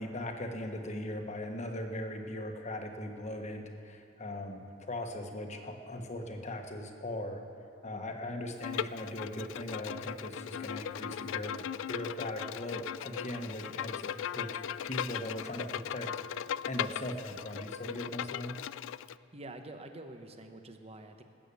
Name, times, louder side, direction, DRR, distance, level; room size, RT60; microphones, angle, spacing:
voice 1, 0.0-7.4 7.8-14.5 14.8-16.1 16.7-18.5, left 1 dB, 35° left, 4 dB, 1.3 m, -39 dB
Bowed string instrument, 8.6-19.1, left 9 dB, 70° left, 0.3 m, -38 dB
voice 2, 19.3-21.2, right 2 dB, 30° right, 6 dB, 0.9 m, -47 dB
19.5 x 8.4 x 6.9 m, 2.5 s
head